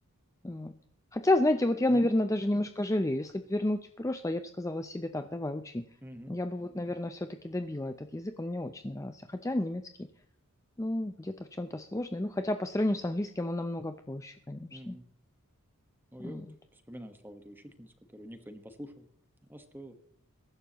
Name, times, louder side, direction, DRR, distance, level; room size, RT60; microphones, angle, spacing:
voice 1, 1.1-5.8 6.3-10.1 10.8-14.9 16.2-16.4, left 1 dB, 15° left, 8 dB, 0.5 m, -31 dB
voice 2, 6.0-6.4 14.7-15.0 16.1-16.4 16.7-19.1 19.5-19.9, equal, 10° right, 7 dB, 1.3 m, -46 dB
22.0 x 11.5 x 3.0 m, 0.64 s
head